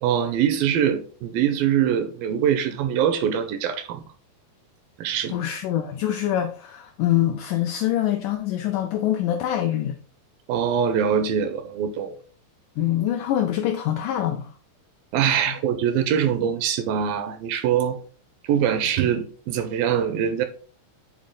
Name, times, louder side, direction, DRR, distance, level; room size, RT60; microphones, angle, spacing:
voice 1, 0.0-4.0 5.0-5.4 10.5-12.2 15.1-18.0 18.4-20.5, right 8 dB, 80° right, 2.4 m, -23 dB
voice 2, 5.3-10.0 12.8-14.5 15.5-15.6, left 11 dB, 85° left, 1.8 m, -24 dB
7.4 x 4.1 x 3.7 m
omnidirectional pair, 4.3 m